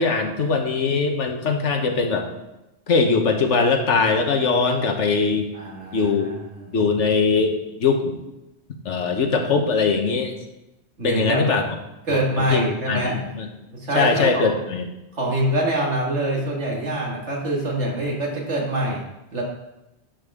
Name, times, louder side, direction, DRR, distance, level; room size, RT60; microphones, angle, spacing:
voice 1, 0.0-2.3 2.9-5.5 5.9-6.3 6.7-8.2 8.8-10.3 11.0-11.6 12.1-13.5 13.9-14.8, left 4 dB, 90° left, 4 dB, 1.4 m, -21 dB
voice 2, 5.5-6.7 11.0-11.5 12.1-13.2 13.7-14.5 15.1-19.0 19.3-19.4, right 1 dB, 75° right, -2 dB, 2.3 m, -25 dB
11.0 x 6.9 x 3.6 m, 0.95 s
omnidirectional pair, 1.2 m